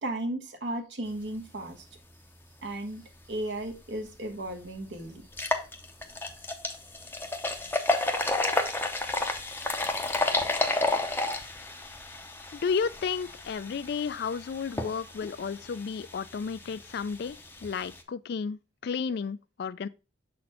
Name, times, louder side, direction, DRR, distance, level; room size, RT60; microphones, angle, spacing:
voice 1, 0.0-1.9 2.6-5.2 11.3-11.5, right 1 dB, 60° right, 1.2 m, -35 dB
sound 1, 4.0-4.1 4.5-4.6 5.2-18.0, left 2 dB, 10° left, 0.6 m, -31 dB
voice 2, 12.5-19.9, left 5 dB, 55° left, 0.3 m, -32 dB
6.6 x 4.2 x 4.2 m
head